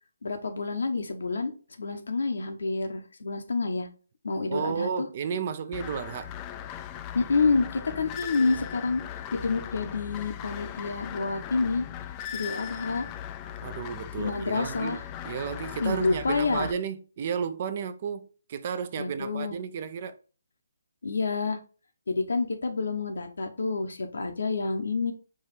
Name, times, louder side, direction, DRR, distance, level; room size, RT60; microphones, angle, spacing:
voice 1, 0.2-1.5 1.8-3.9 4.2-5.1 7.1-9.0 9.3-11.8 12.3-13.1 14.2-15.0 15.8-16.7 19.0-19.6 21.0-21.6 22.1-25.1, left 4 dB, 75° left, 1.0 m, -28 dB
voice 2, 4.5-6.3 13.6-15.0 15.2-20.2, right 7 dB, 40° right, 0.5 m, -33 dB
sound 1, 5.7-16.7, left 10 dB, 20° left, 0.3 m, -39 dB
4.8 x 2.4 x 4.2 m
hypercardioid pair, 155°, 0 cm